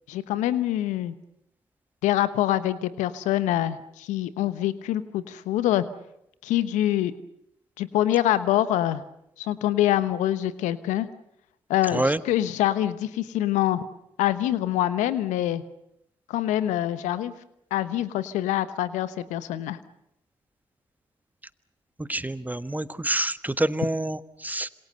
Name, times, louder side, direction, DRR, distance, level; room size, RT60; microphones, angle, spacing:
voice 1, 0.1-1.1 2.0-5.8 6.4-7.1 7.8-9.0 9.4-11.1 11.7-13.8 14.2-15.6 16.3-17.3 17.7-19.8, left 13 dB, 80° left, 14 dB, 1.2 m, -25 dB
voice 2, 22.1-24.7, right 1 dB, 15° right, 13 dB, 1.5 m, -27 dB
27.0 x 26.0 x 6.7 m, 0.79 s
hypercardioid pair, 40°, 12 cm